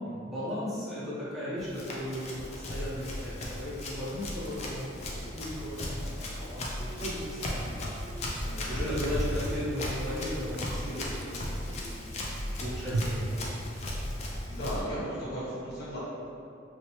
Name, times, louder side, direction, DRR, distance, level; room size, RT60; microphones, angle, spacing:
voice 1, 0.2-8.2 8.7-12.0 12.6-13.6, equal, ahead, -11 dB, 0.8 m, -37 dB
Run, 1.6-14.8, left 1 dB, 35° left, 0.3 m, -36 dB
Chewing mastication, 4.3-14.4, right 2 dB, 90° right, 0.4 m, -42 dB
voice 2, 8.4-8.8 14.5-16.0, equal, 55° left, -10 dB, 1.0 m, -36 dB
3.0 x 2.1 x 2.9 m, 2.5 s
head